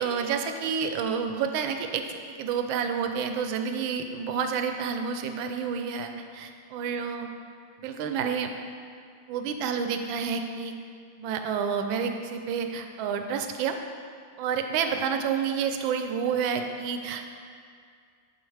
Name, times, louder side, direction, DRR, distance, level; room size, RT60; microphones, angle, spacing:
voice 1, 0.0-2.1 2.4-7.3 7.8-8.5 9.3-10.7 11.2-13.8 14.4-17.3, right 6 dB, 90° right, 6 dB, 1.3 m, -29 dB
11.5 x 4.1 x 3.3 m, 2.2 s
omnidirectional pair, 2.1 m